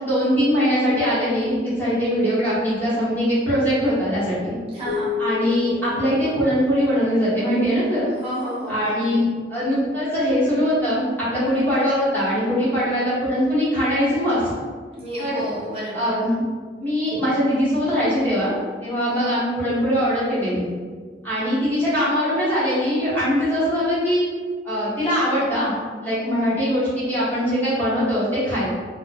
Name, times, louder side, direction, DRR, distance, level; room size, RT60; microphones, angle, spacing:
voice 1, 0.0-4.6 5.2-8.1 8.7-14.5 15.2-15.4 15.9-16.4 16.8-18.6 18.8-20.7 21.2-24.3 24.6-28.7, equal, 10° left, -11 dB, 1.1 m, -21 dB
voice 2, 4.7-5.2 8.2-8.8 15.0-16.1, right 1 dB, 35° right, -8 dB, 0.9 m, -30 dB
sound 1, 4.9-7.4, left 7 dB, 55° left, 0.4 m, -31 dB
2.7 x 2.1 x 2.5 m, 1.6 s
head